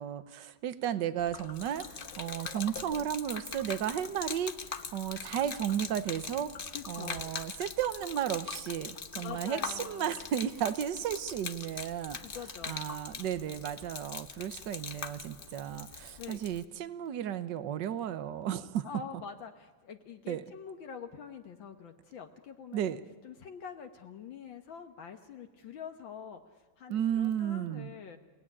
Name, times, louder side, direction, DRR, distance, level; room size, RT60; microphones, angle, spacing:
voice 1, 0.0-4.5 4.9-12.3 12.7-18.9 20.3-20.4 22.7-23.0 26.9-27.9, right 10 dB, 60° right, 13 dB, 1.6 m, -34 dB
Gurgling / Liquid, 1.2-16.6, left 5 dB, 40° left, 0.8 m, -42 dB
voice 2, 6.7-7.4 8.9-10.2 12.2-12.8 16.2-16.4 18.8-23.0 23.2-28.2, left 6 dB, 65° left, 6 dB, 1.9 m, -45 dB
29.0 x 18.5 x 10.0 m, 1.3 s
omnidirectional pair, 2.3 m